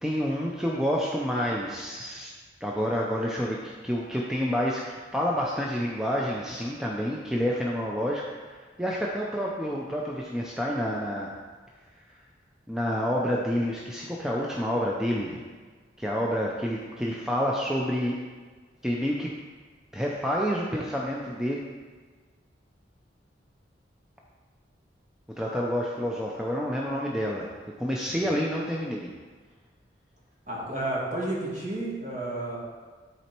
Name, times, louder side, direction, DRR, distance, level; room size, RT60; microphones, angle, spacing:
voice 1, 0.0-2.3 2.6-4.8 5.1-11.3 12.7-15.4 16.0-18.2 18.8-19.3 19.9-21.6 25.4-27.5 27.8-29.1, equal, 5° right, -3 dB, 0.6 m, -28 dB
voice 2, 30.5-32.6, right 1 dB, 40° right, -6 dB, 2.2 m, -31 dB
11.0 x 4.2 x 4.5 m, 1.5 s
head